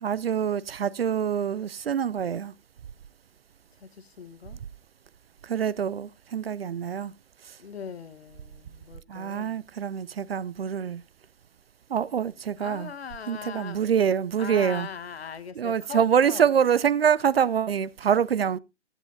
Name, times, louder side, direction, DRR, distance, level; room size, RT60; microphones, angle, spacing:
voice 1, 0.0-2.5 5.4-7.1 7.5-7.6 9.1-11.0 11.9-12.9 13.3-14.9 15.6-18.6, right 8 dB, 55° right, 0.5 m, -25 dB
voice 2, 3.8-4.6 7.6-9.6 12.6-13.9 14.4-16.5, left 6 dB, 55° left, 1.1 m, -40 dB
21.5 x 7.5 x 2.5 m
figure-of-eight pair, 130°, 37 cm